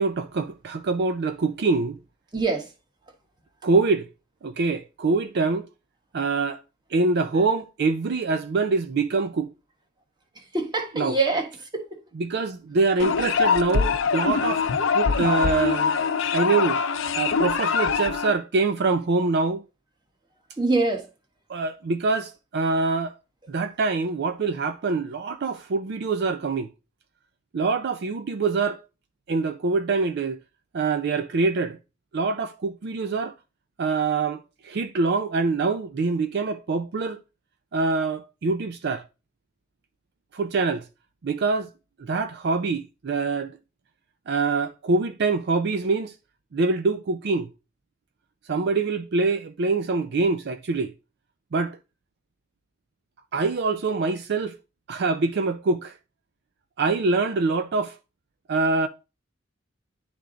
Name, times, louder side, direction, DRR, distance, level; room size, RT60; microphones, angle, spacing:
voice 1, 0.0-2.0 3.6-4.1 4.4-5.7 6.1-6.6 6.9-9.5 10.9-11.2 12.2-14.7 14.9-15.9 16.3-16.8 17.2-19.6 21.5-23.2 23.5-26.7 27.5-28.8 29.3-30.4 30.7-31.8 32.1-33.3 33.8-37.2 37.7-39.0 40.3-40.9 41.2-41.7 42.0-43.6 44.3-46.2 46.5-47.5 48.5-50.9 51.5-51.8 53.3-54.6 54.9-56.0 56.8-58.0 58.5-58.9, right 3 dB, 55° right, 0.4 m, -24 dB
voice 2, 2.3-2.7 10.5-11.9 20.6-21.1, right 3 dB, 25° right, 1.2 m, -24 dB
sound 1, 13.0-18.3, left 5 dB, 85° left, 0.6 m, -23 dB
10.0 x 3.5 x 3.8 m
head